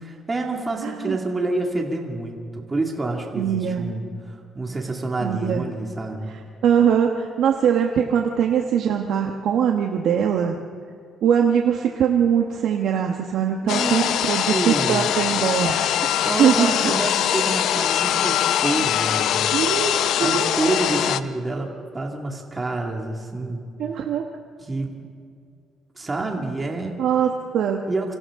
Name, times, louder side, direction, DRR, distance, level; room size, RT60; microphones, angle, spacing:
voice 1, 0.0-6.3 13.6-15.1 16.2-19.4 20.2-23.7 24.7-24.9 26.0-26.9 27.9-28.1, right 2 dB, 20° right, 0 dB, 2.2 m, -28 dB
voice 2, 0.8-1.2 3.3-3.9 5.2-5.6 6.6-10.6 11.2-16.9 19.5-20.6 23.8-24.2 27.0-27.8, right 8 dB, 75° right, 2 dB, 1.3 m, -22 dB
sound 1, 13.7-21.2, left 10 dB, 75° left, 0.6 m, -22 dB
28.5 x 25.5 x 3.7 m, 2.3 s
cardioid pair, 115°, 0 cm